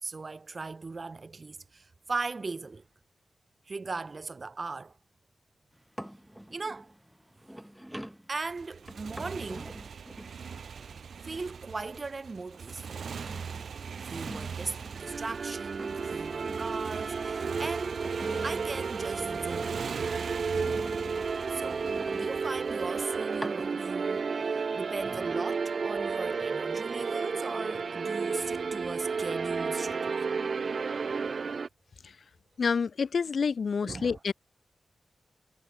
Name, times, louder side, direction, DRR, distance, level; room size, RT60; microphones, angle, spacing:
voice 1, 0.0-2.8 3.7-4.9 6.5-6.9 8.3-9.8 11.2-13.0 14.1-18.0 18.4-19.8 21.5-24.4 24.7-30.2 33.8-34.2, right 3 dB, 35° right, 6.1 m, -38 dB
sound 1, 5.7-12.1 12.5-15.4 15.7-17.5 17.8-20.0 20.5-22.7 23.3-24.2 24.6-25.2, equal, 5° right, 7.6 m, -45 dB
Motorcycle, 8.5-23.7, right 6 dB, 80° right, 0.9 m, -41 dB
sound 2, 14.9-31.7, right 5 dB, 50° right, 0.5 m, -32 dB
voice 2, 32.6-34.3, left 5 dB, 60° left, 0.7 m, -28 dB
wide cardioid pair, 170°, 0 cm